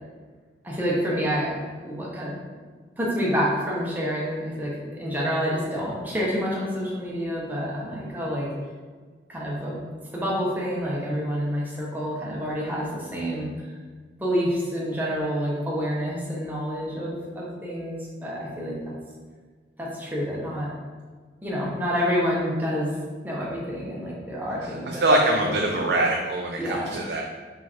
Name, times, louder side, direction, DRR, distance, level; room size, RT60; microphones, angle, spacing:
voice 1, 0.6-2.3 3.0-8.5 9.3-9.8 10.1-13.7 14.2-18.9 19.8-20.7 21.4-23.0 23.2-26.0 26.6-27.0, equal, 10° right, -5 dB, 0.9 m, -28 dB
voice 2, 24.6-27.2, right 1 dB, 65° right, 0 dB, 0.4 m, -24 dB
4.4 x 3.5 x 3.0 m, 1.5 s
head